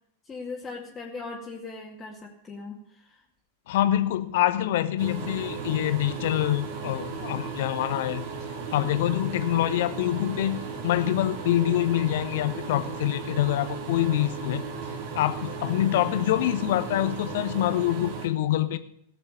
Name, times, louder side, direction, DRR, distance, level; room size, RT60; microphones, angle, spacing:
voice 1, 0.3-3.2, left 3 dB, 20° left, -3 dB, 2.2 m, -39 dB
voice 2, 3.7-8.3 8.7-14.7 15.1-18.8, left 13 dB, 55° left, 12 dB, 1.0 m, -25 dB
sound 1, 5.0-18.3, right 5 dB, 50° right, 2.8 m, -36 dB
18.0 x 6.8 x 6.4 m, 0.72 s
figure-of-eight pair, 95°, 0 cm